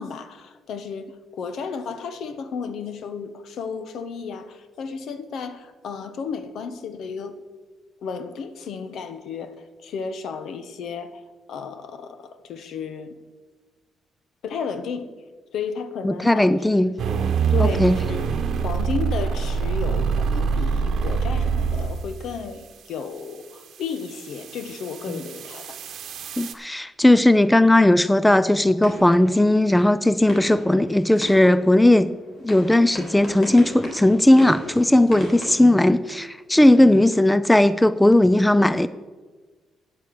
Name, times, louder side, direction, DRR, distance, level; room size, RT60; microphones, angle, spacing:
voice 1, 0.0-7.3 8.0-11.2 11.5-13.2 14.4-15.1 15.5-16.5 16.9-17.0 17.5-18.2 18.6-25.8, left 6 dB, 70° left, 10 dB, 1.0 m, -33 dB
voice 2, 16.0-16.9 17.6-18.0 26.4-32.1 32.4-38.9, left 1 dB, 10° left, 15 dB, 0.4 m, -17 dB
sound 1, 17.0-22.2 23.9-26.5, right 6 dB, 70° right, 0.9 m, -25 dB
sound 2, 27.4-36.5, equal, 55° left, 4.0 m, -39 dB
9.1 x 7.6 x 7.0 m, 1.3 s
cardioid pair, 90°, 0 cm